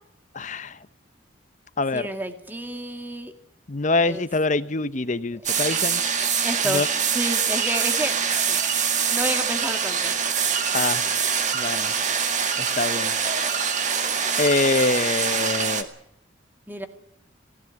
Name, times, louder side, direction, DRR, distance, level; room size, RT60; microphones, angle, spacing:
voice 1, 0.3-0.8 1.8-2.1 3.7-6.0 6.6-6.9 10.7-11.0 11.5-11.9 12.6-13.2 14.4-15.9, left 3 dB, 40° left, 0.9 m, -24 dB
voice 2, 1.9-3.3 4.0-4.3 6.4-8.2 8.5-8.6 9.1-10.1 16.7-16.9, right 1 dB, 10° right, 2.1 m, -30 dB
sound 1, 5.4-15.8, right 6 dB, 40° right, 1.9 m, -24 dB
19.5 x 16.0 x 9.8 m
head